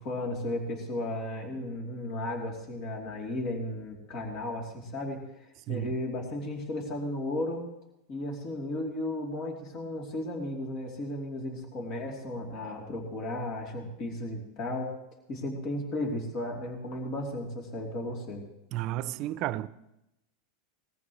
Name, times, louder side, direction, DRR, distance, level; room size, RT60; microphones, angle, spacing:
voice 1, 0.0-7.7 8.1-14.9 15.3-18.4, left 1 dB, 50° left, 3.2 m, -34 dB
voice 2, 18.7-19.7, right 14 dB, 50° right, 0.6 m, -32 dB
20.5 x 14.5 x 3.2 m
hypercardioid pair, 115°, 0 cm